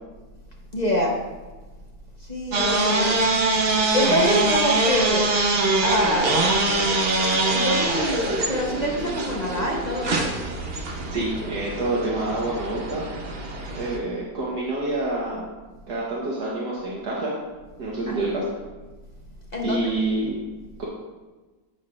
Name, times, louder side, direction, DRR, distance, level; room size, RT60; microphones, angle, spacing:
voice 1, 0.7-1.1 2.3-3.2 3.9-5.3 5.8-6.6 7.5-10.3 18.1-18.3 19.5-19.8, equal, 30° left, -2 dB, 0.9 m, -25 dB
sound 1, 2.5-14.0, right 2 dB, 40° right, 1.0 m, -23 dB
voice 2, 11.1-13.0 13.7-15.4 15.9-17.3 17.8-18.4 19.6-20.4 20.8-20.9, right 2 dB, 70° right, -5 dB, 1.8 m, -27 dB
9.5 x 7.9 x 2.5 m, 1.3 s
omnidirectional pair, 1.9 m